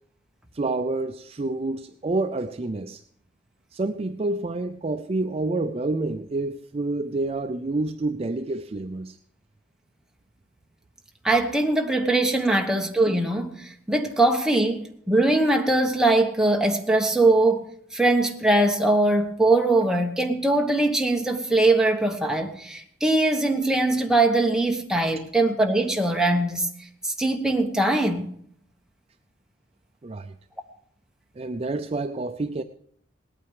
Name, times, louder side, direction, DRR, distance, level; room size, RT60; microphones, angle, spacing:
voice 1, 0.5-3.0 3.7-9.2 30.0-30.3 31.4-32.6, right 2 dB, 30° right, 0.4 m, -28 dB
voice 2, 11.2-17.6 17.9-26.7 27.0-28.4, right 2 dB, 5° right, 1.1 m, -21 dB
18.5 x 8.9 x 4.8 m
head